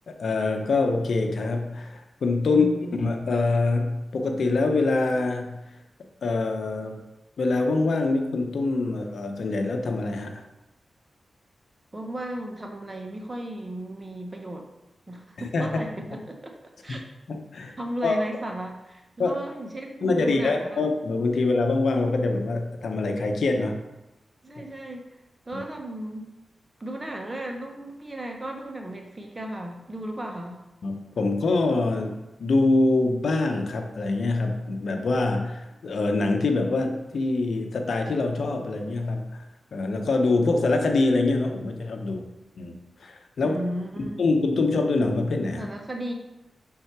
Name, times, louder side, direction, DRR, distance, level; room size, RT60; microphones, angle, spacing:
voice 1, 0.1-2.7 3.0-5.6 6.2-7.0 7.4-10.4 15.5-15.7 16.9-17.0 17.3-17.8 18.0-18.2 19.2-19.4 20.0-23.8 25.5-25.6 30.8-39.4 39.7-42.2 42.6-42.7 43.0-43.6 44.0-45.7, left 3 dB, 75° left, 4 dB, 0.8 m, -25 dB
voice 2, 2.5-3.0 11.9-14.7 15.1-16.5 16.8-17.0 17.8-20.8 24.4-25.1 25.5-26.3 26.8-30.6 43.4-44.2 45.6-46.1, right 1 dB, 25° right, 2 dB, 1.1 m, -35 dB
5.7 x 3.7 x 4.6 m, 0.96 s
cardioid pair, 55°, 0 cm